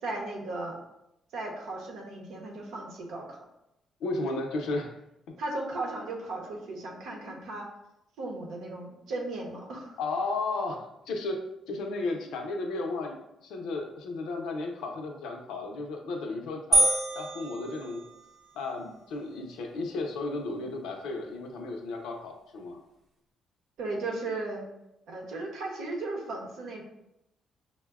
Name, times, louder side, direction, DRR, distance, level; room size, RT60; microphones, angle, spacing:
voice 1, 0.0-0.8 1.3-3.4 5.4-7.7 8.2-10.0 12.2-12.3 23.8-24.7 25.1-26.8, right 2 dB, 85° right, 0 dB, 0.8 m, -36 dB
voice 2, 4.0-4.9 10.0-11.4 11.7-16.9 17.1-18.0 18.5-22.8, left 3 dB, 85° left, 2 dB, 0.6 m, -34 dB
sound 1, 16.7-18.5, right 2 dB, 55° right, 0.7 m, -26 dB
5.4 x 2.1 x 2.3 m, 0.84 s
cardioid pair, 90°, 0 cm